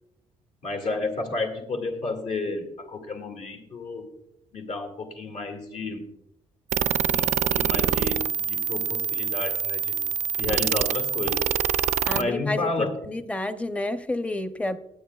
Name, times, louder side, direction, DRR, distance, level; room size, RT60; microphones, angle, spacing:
voice 1, 0.6-4.1 4.5-6.1 7.0-10.0 10.4-11.5 12.1-13.0, left 3 dB, 65° left, 3 dB, 2.2 m, -31 dB
sound 1, 6.7-12.2, right 8 dB, 60° right, 0.4 m, -25 dB
voice 2, 12.1-12.7 13.1-14.8, left 2 dB, 10° left, 10 dB, 0.6 m, -29 dB
19.5 x 8.4 x 2.3 m, 0.85 s
cardioid pair, 130°, 13 cm